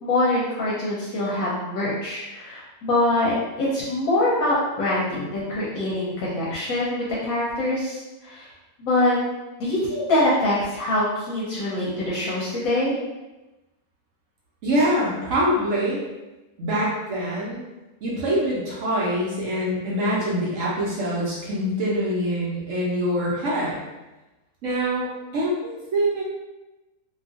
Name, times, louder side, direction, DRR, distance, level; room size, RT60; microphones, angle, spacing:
voice 1, 0.0-8.5 8.8-9.2 9.6-13.0 14.7-14.9 25.1-25.3, left 1 dB, 70° left, -6 dB, 1.0 m, -24 dB
voice 2, 14.6-16.0 16.6-17.6 18.0-23.8 24.6-25.1 25.3-26.2, equal, 60° right, -6 dB, 1.0 m, -24 dB
2.7 x 2.4 x 2.5 m, 1.0 s
omnidirectional pair, 1.6 m